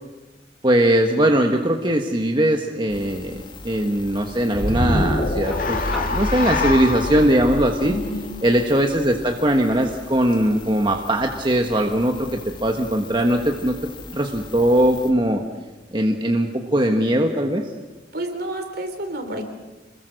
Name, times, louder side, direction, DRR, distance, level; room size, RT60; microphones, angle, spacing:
voice 1, 0.6-5.8 6.1-7.9 8.4-12.3 12.6-13.7 14.1-15.4 15.9-17.6, right 1 dB, 25° right, 3 dB, 1.4 m, -20 dB
sound 1, 2.9-15.1, left 3 dB, 25° left, 1.8 m, -41 dB
sound 2, 4.5-8.9, left 2 dB, 50° left, 2.2 m, -25 dB
sound 3, 5.4-13.5 14.9-15.0, equal, ahead, 2.6 m, -43 dB
voice 2, 7.8-8.3 18.1-19.4, right 1 dB, 55° right, 6 dB, 3.7 m, -29 dB
26.5 x 21.0 x 6.6 m, 1.1 s
head